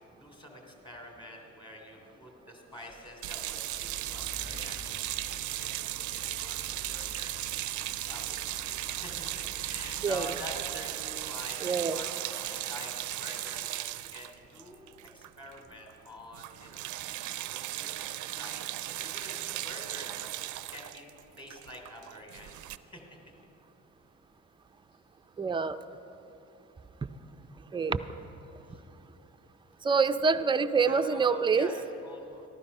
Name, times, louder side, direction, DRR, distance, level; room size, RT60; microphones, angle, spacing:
voice 1, 0.2-5.0 5.4-7.4 8.0-14.9 15.1-16.9 17.7-18.6 18.9-20.3 20.7-21.1 21.4-22.6 22.9-23.0 28.7-28.8 30.8-32.5, equal, 15° left, 1 dB, 2.8 m, -47 dB
sound 1, 2.7-10.7, left 1 dB, 70° left, 3.0 m, -49 dB
sound 2, 3.2-15.6 15.9-16.1 16.3-22.8, right 15 dB, 75° right, 0.5 m, -37 dB
voice 2, 11.6-12.0 25.4-25.8 27.7-28.0 29.8-31.7, right 5 dB, 15° right, 9 dB, 0.4 m, -26 dB
14.0 x 12.0 x 5.4 m, 3.0 s
cardioid pair, 90°, 30 cm